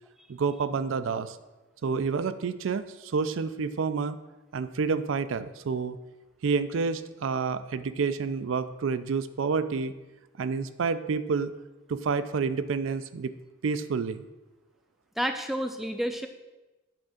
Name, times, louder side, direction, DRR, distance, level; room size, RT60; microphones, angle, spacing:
voice 1, 0.3-1.4 1.8-4.2 4.5-6.0 6.4-9.9 10.4-11.5 11.9-13.3 13.6-14.3, right 5 dB, 75° right, 12 dB, 0.4 m, -29 dB
voice 2, 15.2-16.3, equal, ahead, 6 dB, 0.4 m, -30 dB
8.8 x 3.6 x 6.3 m, 1.1 s
head